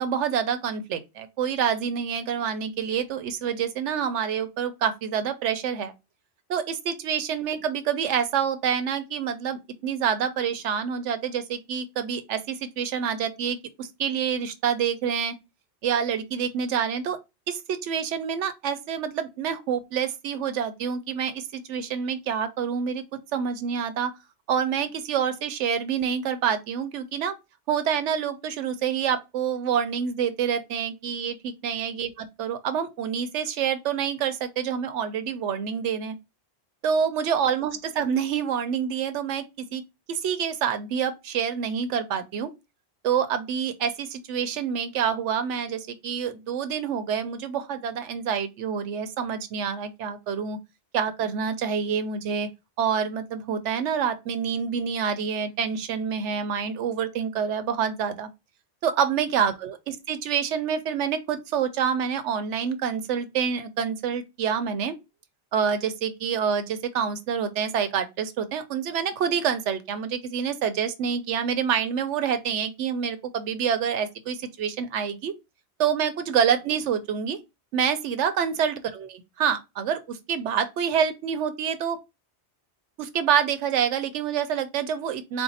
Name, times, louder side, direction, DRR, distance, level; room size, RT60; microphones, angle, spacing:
voice 1, 0.0-5.9 6.5-15.3 15.8-17.2 17.5-23.0 23.3-24.1 24.5-27.4 27.7-36.1 36.8-39.4 39.7-39.8 40.1-42.5 43.0-50.6 50.9-52.5 52.8-58.3 58.8-65.0 65.5-75.3 75.8-77.4 77.7-82.0 83.0-85.4, right 7 dB, 90° right, 0.9 m, -27 dB
4.4 x 2.0 x 4.0 m
omnidirectional pair, 1.2 m